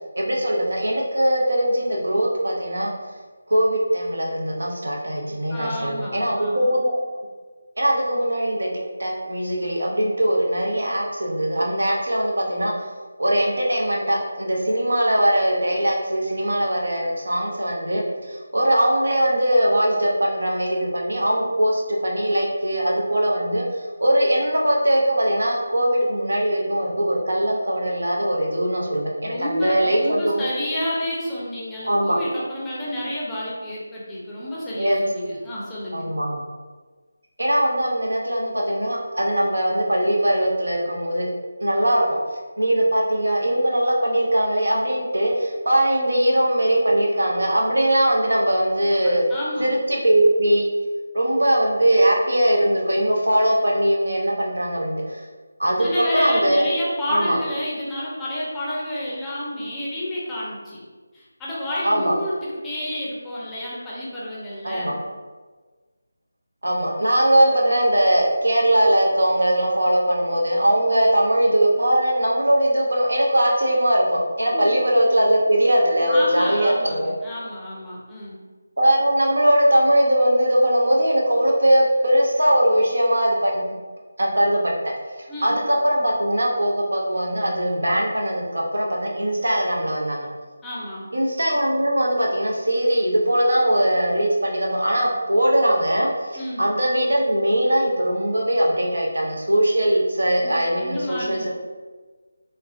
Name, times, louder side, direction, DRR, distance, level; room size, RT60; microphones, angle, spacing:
voice 1, 0.2-2.9 3.5-6.9 7.8-8.7 9.0-12.7 13.2-23.6 24.0-30.5 31.8-32.2 34.8-35.0 35.9-36.4 37.4-41.3 41.6-42.2 42.6-49.2 49.6-50.7 51.1-55.2 55.6-56.7 57.1-57.4 61.8-62.2 64.6-64.9 66.6-77.1 78.8-83.6 84.2-84.7 85.4-90.3 91.1-101.5, right 1 dB, 80° right, -2 dB, 0.7 m, -20 dB
voice 2, 5.5-6.7 29.2-36.1 49.3-49.7 55.8-60.8 61.1-65.0 74.5-74.7 76.1-78.4 85.3-85.6 90.6-91.1 96.4-96.6 100.3-101.5, left 1 dB, 10° left, -8 dB, 0.5 m, -30 dB
3.4 x 2.1 x 2.4 m, 1.4 s
figure-of-eight pair, 165°, 0 cm